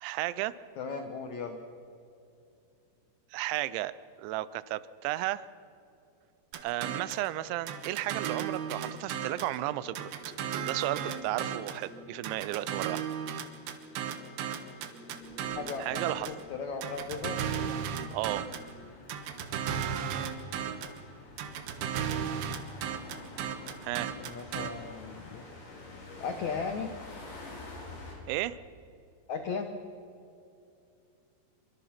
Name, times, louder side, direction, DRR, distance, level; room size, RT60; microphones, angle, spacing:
voice 1, 0.0-0.6 3.3-3.9 4.2-5.5 6.6-10.1 10.7-13.0 15.8-16.3 18.1-18.5 23.8-24.1 28.3-28.6, right 15 dB, 90° right, 17 dB, 3.1 m, -33 dB
voice 2, 0.8-1.6 15.5-17.4 23.8-25.4 26.2-26.9 29.3-29.7, left 5 dB, 90° left, 6 dB, 1.6 m, -37 dB
sound 1, 6.5-7.3 7.7-9.6 9.9-11.8 12.2-16.4 16.8-18.7 19.1-21.0 21.4-24.7, right 8 dB, 70° right, 3.0 m, -35 dB
sound 2, 7.4-18.9, left 1 dB, ahead, 5.1 m, -54 dB
sound 3, 15.2-28.2, left 2 dB, 55° left, 6.2 m, -49 dB
25.0 x 24.0 x 5.9 m, 2.7 s
omnidirectional pair, 5.2 m